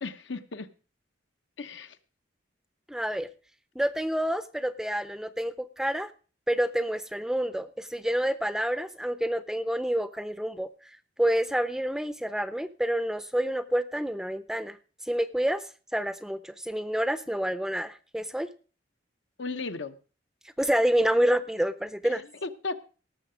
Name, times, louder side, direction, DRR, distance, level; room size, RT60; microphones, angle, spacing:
voice 1, 0.0-0.7 1.6-2.0 19.4-19.9 22.1-22.8, left 3 dB, 75° left, 9 dB, 0.9 m, -35 dB
voice 2, 2.9-3.3 3.8-6.1 6.5-10.7 11.2-14.8 15.1-15.6 15.9-18.5 20.6-22.2, equal, 5° right, 13 dB, 0.5 m, -28 dB
18.0 x 6.9 x 5.0 m, 0.37 s
head